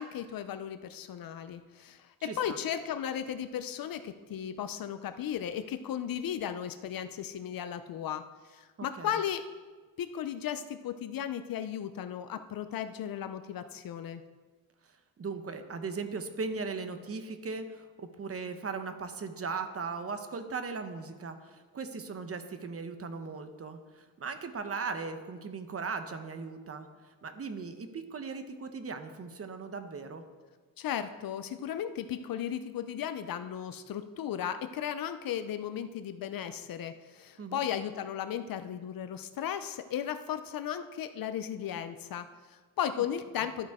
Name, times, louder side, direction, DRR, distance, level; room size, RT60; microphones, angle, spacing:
voice 1, 0.0-9.4 10.0-14.2 30.8-43.7, left 9 dB, 75° left, 10 dB, 0.6 m, -36 dB
voice 2, 2.2-2.6 8.8-9.2 15.2-30.2 37.4-37.6, right 4 dB, 40° right, 8 dB, 0.8 m, -38 dB
12.0 x 8.9 x 3.6 m, 1.4 s
wide cardioid pair, 130°, 35 cm